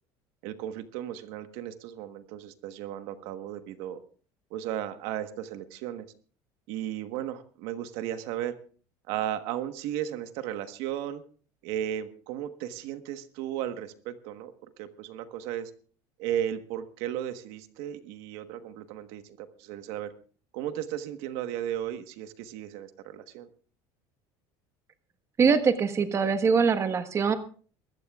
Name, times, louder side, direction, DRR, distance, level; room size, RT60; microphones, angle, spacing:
voice 1, 0.4-4.0 4.5-6.0 6.7-8.5 9.1-11.2 11.6-14.5 14.8-15.7 16.2-20.1 20.5-23.5, right 11 dB, 75° right, 9 dB, 1.3 m, -35 dB
voice 2, 25.4-27.3, right 5 dB, 25° right, 9 dB, 1.3 m, -23 dB
23.0 x 14.5 x 2.4 m, 0.42 s
cardioid pair, 135°, 10 cm